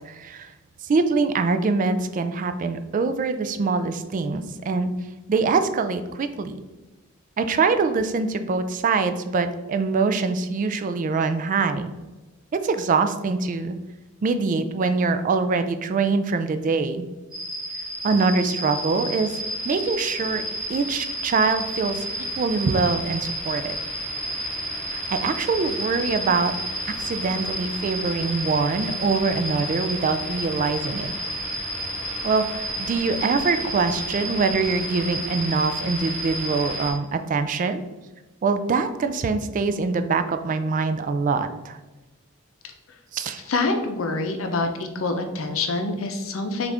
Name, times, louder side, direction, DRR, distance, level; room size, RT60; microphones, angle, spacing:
voice 1, 0.1-0.5 0.9-4.9 5.3-6.6 7.4-11.9 12.5-13.8 14.2-17.1 18.0-19.3 19.6-20.4 20.7-23.8 24.9-26.5 27.0-31.1 32.2-37.8 38.4-41.8 43.1-43.4, right 4 dB, 40° right, 9 dB, 0.3 m, -24 dB
sound 1, 17.3-36.9, right 1 dB, 5° right, 1.4 m, -31 dB
voice 2, 43.5-46.7, left 3 dB, 70° left, 5 dB, 0.6 m, -26 dB
6.2 x 2.5 x 3.4 m, 1.1 s
head